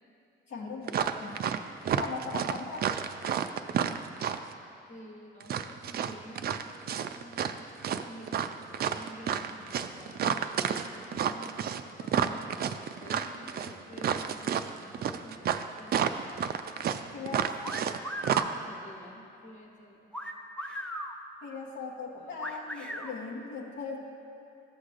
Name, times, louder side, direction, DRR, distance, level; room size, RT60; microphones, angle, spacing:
voice 1, 0.5-1.5 1.8-2.9 17.1-17.5 21.4-24.0, left 4 dB, 65° left, -3 dB, 1.0 m, -39 dB
sound 1, 0.9-1.6 1.8-4.5 5.4-7.6 7.8-18.0 18.2-18.4, right 8 dB, 50° right, 0.4 m, -30 dB
voice 2, 4.9-7.5 7.9-12.5 13.0-17.6 18.4-20.1 22.2-22.4, equal, 35° left, 0 dB, 1.2 m, -50 dB
sound 2, 17.6-18.5 20.1-21.1 22.4-23.1, equal, 5° left, 0.7 m, -37 dB
13.5 x 6.4 x 2.5 m, 2.8 s
cardioid pair, 90°, 20 cm